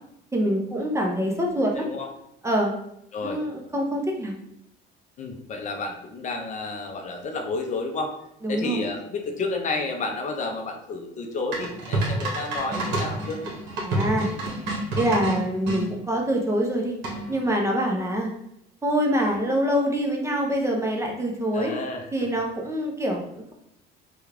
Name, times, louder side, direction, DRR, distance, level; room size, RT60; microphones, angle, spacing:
voice 1, 0.3-1.8 2.4-2.7 3.2-4.3 8.4-8.8 13.8-14.3 14.9-16.9 17.3-18.3 18.8-21.7 22.1-23.5, equal, 15° right, 0 dB, 0.6 m, -25 dB
voice 2, 1.8-2.1 3.1-3.4 5.2-8.1 8.5-13.4 21.5-22.3, left 3 dB, 40° left, 3 dB, 0.5 m, -31 dB
sound 1, 11.5-15.8 17.0-17.5, right 2 dB, 70° right, 1.1 m, -28 dB
3.4 x 2.3 x 3.2 m, 0.78 s
cardioid pair, 120°, 19 cm